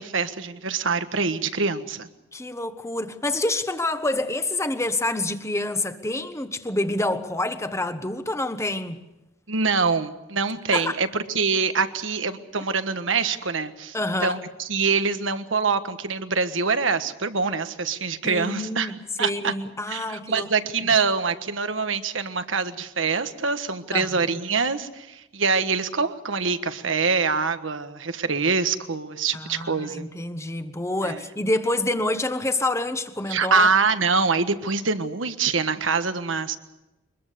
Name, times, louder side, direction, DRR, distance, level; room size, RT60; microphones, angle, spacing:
voice 1, 0.0-2.1 9.5-14.0 14.2-14.4 14.6-18.9 19.2-19.5 19.9-30.1 31.0-31.2 33.3-36.6, right 4 dB, 85° right, 1.4 m, -24 dB
voice 2, 2.3-9.0 10.7-10.9 13.9-14.4 18.2-20.5 23.9-24.3 29.3-33.7, left 2 dB, 15° left, 1.3 m, -27 dB
23.5 x 21.5 x 6.8 m
head